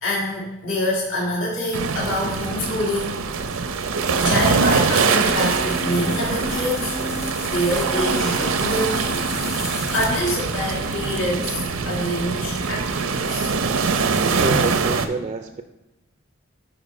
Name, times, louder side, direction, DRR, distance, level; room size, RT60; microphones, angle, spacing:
voice 1, 0.0-3.2 4.1-7.1 7.4-9.2 9.5-13.5, left 1 dB, 65° left, -5 dB, 1.7 m, -26 dB
sound 1, 1.7-15.1, right 5 dB, 90° right, 0.6 m, -23 dB
sound 2, 5.2-14.9, left 1 dB, 30° left, 1.0 m, -35 dB
voice 2, 14.3-15.6, right 3 dB, 30° right, 6 dB, 0.3 m, -28 dB
10.0 x 3.9 x 4.0 m, 0.97 s
head